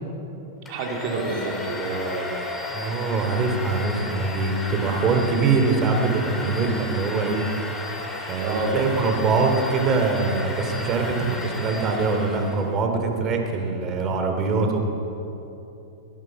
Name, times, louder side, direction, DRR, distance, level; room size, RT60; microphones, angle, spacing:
Domestic sounds home sounds, 0.7-12.8, left 2 dB, 15° left, 2.3 m, -34 dB
voice 1, 0.7-2.3 8.4-8.8, right 3 dB, 55° right, 0 dB, 3.2 m, -28 dB
voice 2, 2.7-7.4 8.2-14.8, right 4 dB, 30° right, 3 dB, 2.8 m, -23 dB
21.0 x 11.0 x 6.0 m, 3.0 s
hypercardioid pair, 115°, 0 cm